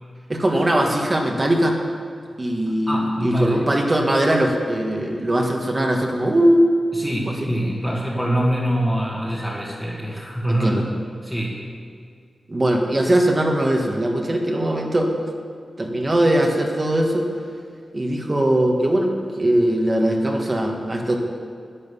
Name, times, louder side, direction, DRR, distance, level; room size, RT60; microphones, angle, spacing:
voice 1, 0.3-1.8 2.4-6.6 7.3-7.5 10.5-10.8 12.5-15.1 15.8-17.3 17.9-19.1 19.4-21.2, right 1 dB, 25° right, 1 dB, 1.6 m, -20 dB
voice 2, 2.9-3.7 6.9-10.9 11.2-11.6, equal, 5° left, -7 dB, 1.9 m, -24 dB
11.5 x 10.5 x 7.1 m, 2.2 s
wide cardioid pair, 110°, 0 cm